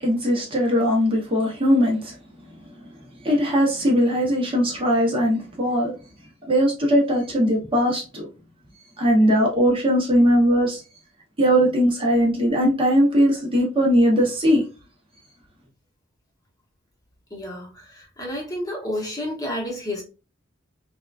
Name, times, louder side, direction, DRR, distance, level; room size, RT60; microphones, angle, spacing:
voice 1, 0.0-2.2 3.2-5.9 6.5-8.2 9.0-10.8 11.4-14.6, equal, 25° right, 0.8 m, -19 dB
voice 2, 17.3-20.0, left 1 dB, 20° left, 0.9 m, -30 dB
3.5 x 2.3 x 2.4 m
head